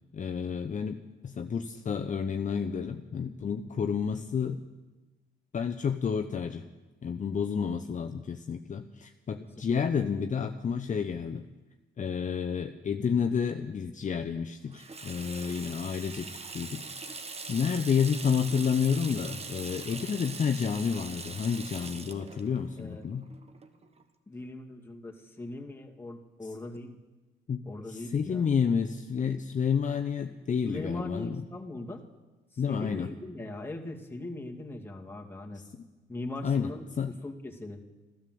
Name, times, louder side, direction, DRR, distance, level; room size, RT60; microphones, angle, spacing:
voice 1, 0.1-4.6 5.5-6.6 7.0-11.5 12.0-16.3 16.5-17.2 17.5-23.2 26.4-26.5 27.5-31.4 32.6-33.1 36.4-36.7 37.0-37.1, left 6 dB, 40° left, 7 dB, 0.8 m, -30 dB
Water tap faucet / Sink (filling or washing), 14.7-24.0, right 3 dB, 30° right, 1.4 m, -42 dB
voice 2, 22.8-23.1 24.3-27.0 27.7-28.4 30.7-32.0 32.5-35.6 36.1-37.8, left 2 dB, 10° left, 1 dB, 2.2 m, -40 dB
14.5 x 12.5 x 7.8 m, 1.2 s
cardioid pair, 90°, 20 cm